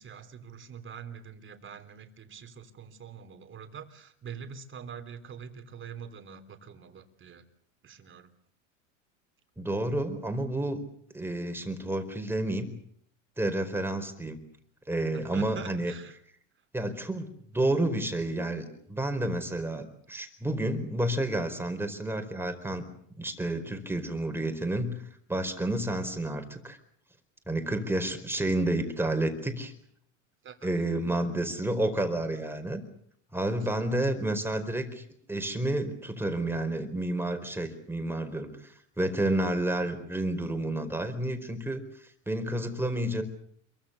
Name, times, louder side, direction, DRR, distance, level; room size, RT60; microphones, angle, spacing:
voice 1, 0.0-7.4 7.8-8.3 15.1-16.2 30.4-30.7, right 7 dB, 30° right, 8 dB, 3.5 m, -44 dB
voice 2, 9.6-10.8 11.1-12.7 13.4-14.4 14.9-15.9 16.7-22.8 23.2-25.0 25.3-26.8 27.5-29.7 30.6-32.8 33.3-35.0 35.3-38.6 39.0-41.8 42.3-43.2, right 1 dB, 5° right, 6 dB, 4.7 m, -30 dB
27.0 x 23.5 x 7.0 m, 0.66 s
supercardioid pair, 105°, 38 cm